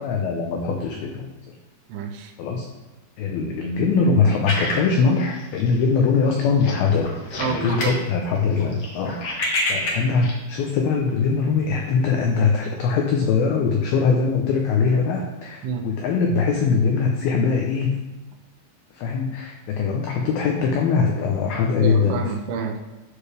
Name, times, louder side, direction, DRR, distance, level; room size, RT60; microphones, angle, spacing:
voice 1, 0.0-1.3 2.4-2.7 3.2-18.0 18.9-22.3, left 5 dB, 80° left, 1 dB, 2.2 m, -22 dB
voice 2, 1.9-2.3 7.4-7.9 15.6-15.9 21.8-22.8, right 5 dB, 85° right, 3 dB, 3.4 m, -28 dB
sound 1, 4.4-5.8 6.1-6.3 6.6-8.0 8.3-10.3, left 1 dB, 60° left, 1.5 m, -27 dB
11.5 x 6.9 x 3.4 m, 1.1 s
omnidirectional pair, 5.2 m